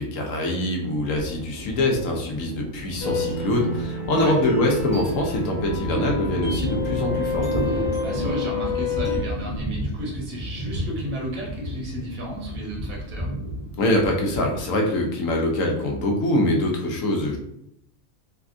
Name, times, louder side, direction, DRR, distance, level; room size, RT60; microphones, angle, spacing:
voice 1, 0.0-7.6 13.8-17.4, left 1 dB, 70° left, 1 dB, 0.9 m, -24 dB
Thunder, 1.2-16.0, equal, 40° right, 0.6 m, -33 dB
sound 1, 3.0-9.2, left 2 dB, 40° left, 1.3 m, -28 dB
voice 2, 7.6-13.3, right 1 dB, 70° right, -3 dB, 1.3 m, -33 dB
3.4 x 2.3 x 2.5 m, 0.75 s
omnidirectional pair, 1.5 m